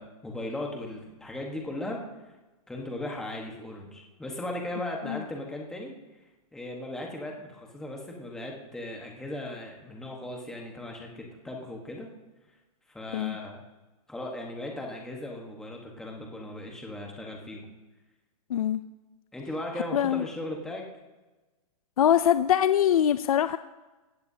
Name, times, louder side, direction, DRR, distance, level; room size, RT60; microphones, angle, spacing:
voice 1, 0.0-2.0 2.7-5.9 6.5-12.1 12.9-13.6 14.1-17.7 19.3-20.8, left 1 dB, 5° left, 0 dB, 1.3 m, -37 dB
voice 2, 18.5-18.8 19.9-20.3 22.0-23.6, left 10 dB, 65° left, 12 dB, 0.5 m, -23 dB
18.5 x 15.5 x 2.8 m, 1.2 s
hypercardioid pair, 170°, 20 cm